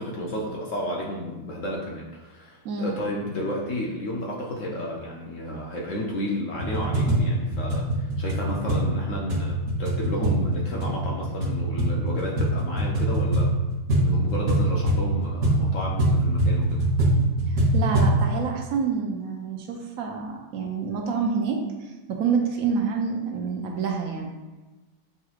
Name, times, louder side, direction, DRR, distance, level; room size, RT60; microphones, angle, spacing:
voice 1, 0.0-13.5 13.9-16.8, equal, 70° left, -2 dB, 0.7 m, -32 dB
voice 2, 2.6-3.0 17.5-24.3, right 5 dB, 75° right, 2 dB, 0.8 m, -28 dB
sound 1, 6.5-18.2, right 1 dB, 55° right, 1.3 m, -23 dB
6.8 x 3.0 x 2.3 m, 1.2 s
omnidirectional pair, 2.0 m